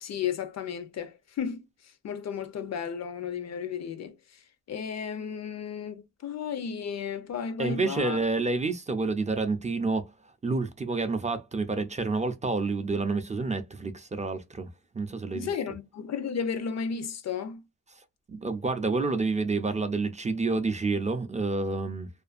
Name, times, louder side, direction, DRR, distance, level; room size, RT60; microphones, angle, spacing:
voice 1, 0.0-1.6 2.0-4.1 4.7-8.2 15.3-17.6, left 7 dB, 65° left, 0.5 m, -33 dB
voice 2, 7.6-10.1 10.4-14.7 14.9-15.5 18.3-22.1, right 3 dB, 25° right, 0.4 m, -29 dB
2.5 x 2.4 x 2.4 m
wide cardioid pair, 120°, 29 cm